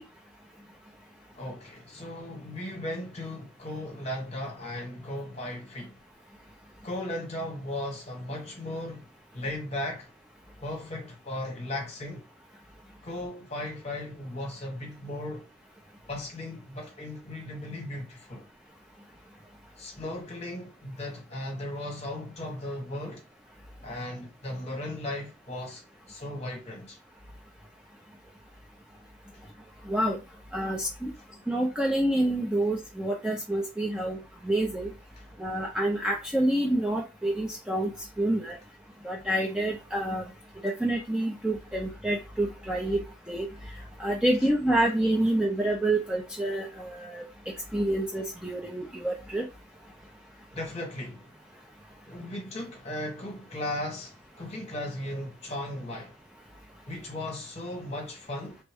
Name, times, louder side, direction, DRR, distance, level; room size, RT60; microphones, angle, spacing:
voice 1, 1.4-6.0 6.8-9.1 9.3-10.1 10.6-12.2 13.0-15.5 16.1-18.5 19.8-23.2 23.8-25.8 26.1-27.0 35.2-35.3 50.5-51.3 52.1-56.1 56.8-58.6, left 1 dB, 30° left, 1.1 m, -36 dB
voice 2, 29.9-30.2 30.5-31.1 31.5-34.9 35.4-37.9 38.2-38.6 39.0-40.2 40.6-43.5 44.0-47.2 47.7-49.4, right 1 dB, 5° right, 0.4 m, -27 dB
3.4 x 2.1 x 3.4 m
head